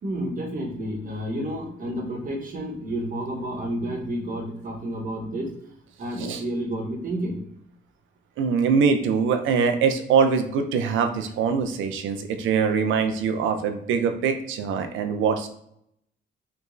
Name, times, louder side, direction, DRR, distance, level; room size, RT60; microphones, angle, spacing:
voice 1, 0.0-5.5 6.0-7.4, right 1 dB, 45° right, 0 dB, 1.1 m, -30 dB
voice 2, 8.4-15.5, right 6 dB, 75° right, 7 dB, 0.5 m, -23 dB
3.4 x 3.0 x 2.5 m, 0.74 s
cardioid pair, 90°, 20 cm